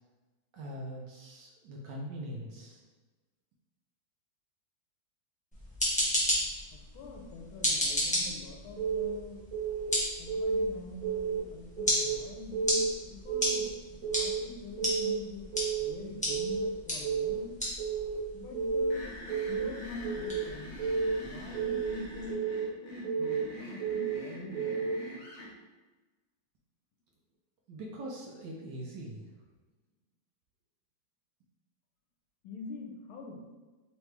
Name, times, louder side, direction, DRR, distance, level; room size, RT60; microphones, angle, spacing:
voice 1, 0.5-2.8 27.7-29.2, right 1 dB, 75° right, -1 dB, 1.1 m, -42 dB
sound 1, 5.5-22.3, equal, 10° left, 0.3 m, -35 dB
voice 2, 6.7-9.4 10.2-15.5 15.8-17.5 18.3-19.0 19.5-20.8 21.2-22.5 22.8-24.9 32.4-33.4, left 3 dB, 90° left, 1 dB, 1.5 m, -44 dB
Keyboard (musical) / Alarm, 8.8-9.1 9.5-9.9 10.3-10.6 11.0-11.4 11.8-12.2 12.5-12.9 13.3-13.7 14.0-14.4 14.8-15.2 15.5-15.9 16.3-16.7 17.0-17.4 17.8-18.2 18.5-18.9 19.3-19.7 20.0-20.4 20.8-21.2 21.5-21.9 22.3-22.7 23.0-23.4 23.8-24.2 24.5-24.9, right 6 dB, 45° right, 1.8 m, -31 dB
sound 2, 18.9-25.5, equal, 55° left, 0.8 m, -45 dB
3.8 x 3.1 x 3.3 m, 1.2 s
omnidirectional pair, 2.3 m